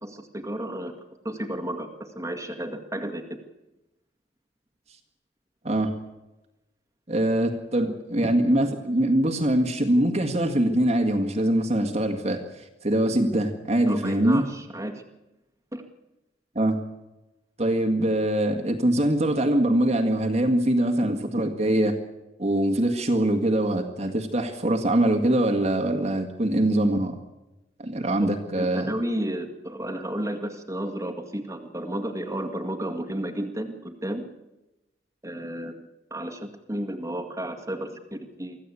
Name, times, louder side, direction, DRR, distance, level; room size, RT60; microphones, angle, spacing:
voice 1, 0.0-0.9 1.2-3.2 13.9-15.0 15.7-15.8 28.6-34.3 35.2-38.6, right 1 dB, 15° right, 4 dB, 2.1 m, -32 dB
voice 2, 7.1-14.5 16.6-16.8 17.6-22.0 22.4-27.2 27.8-28.9, right 1 dB, 35° right, 4 dB, 1.8 m, -23 dB
24.5 x 15.0 x 8.4 m, 1.0 s
head